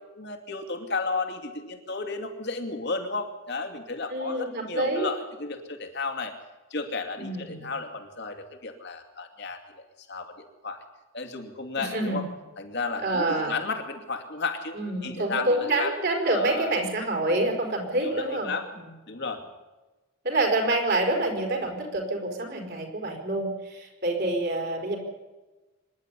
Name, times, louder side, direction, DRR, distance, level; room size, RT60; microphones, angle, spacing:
voice 1, 0.0-6.3 6.7-10.8 11.1-12.2 12.6-15.9 16.2-16.8 18.0-18.7 19.1-19.4, left 3 dB, 50° left, 5 dB, 2.6 m, -33 dB
voice 2, 4.1-5.1 7.1-7.7 11.8-12.2 13.0-13.5 14.7-18.9 20.2-25.0, right 2 dB, 45° right, 2 dB, 4.7 m, -27 dB
25.5 x 11.0 x 9.9 m, 1.2 s
head